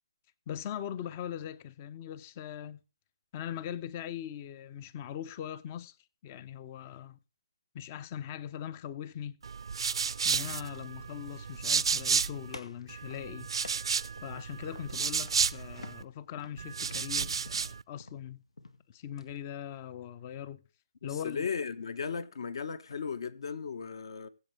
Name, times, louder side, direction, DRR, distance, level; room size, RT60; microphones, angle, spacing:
voice 1, 0.5-2.8 3.3-6.0 6.2-7.2 7.7-9.4 10.2-13.5 14.2-18.4 18.9-20.6 21.0-21.5, left 9 dB, 20° left, 0.6 m, -41 dB
sound 1, 9.4-12.6 12.9-16.0 16.6-17.8, right 6 dB, 60° right, 0.5 m, -32 dB
sound 2, 12.5-14.4 14.7-15.0 15.3-15.5 15.8-19.4, left 3 dB, 90° left, 2.3 m, -50 dB
voice 2, 21.0-24.3, left 6 dB, 55° left, 1.4 m, -36 dB
21.5 x 8.1 x 3.4 m
hypercardioid pair, 170°, 3 cm